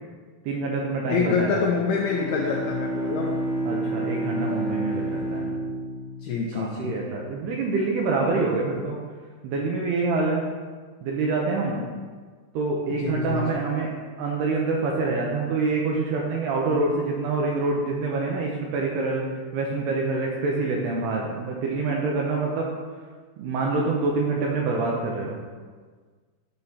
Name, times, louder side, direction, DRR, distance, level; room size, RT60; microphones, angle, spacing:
voice 1, 0.5-1.6 3.7-5.5 6.5-9.0 9.4-10.4 11.0-11.8 12.5-13.9 14.2-19.3 19.5-22.7 23.4-25.4, right 3 dB, 80° right, -1 dB, 2.4 m, -26 dB
voice 2, 1.1-3.4 6.2-6.9 13.0-13.6, left 5 dB, 90° left, -2 dB, 2.2 m, -26 dB
Bowed string instrument, 1.8-7.3, right 1 dB, 75° left, 3.1 m, -30 dB
12.0 x 5.4 x 2.8 m, 1.5 s
omnidirectional pair, 5.4 m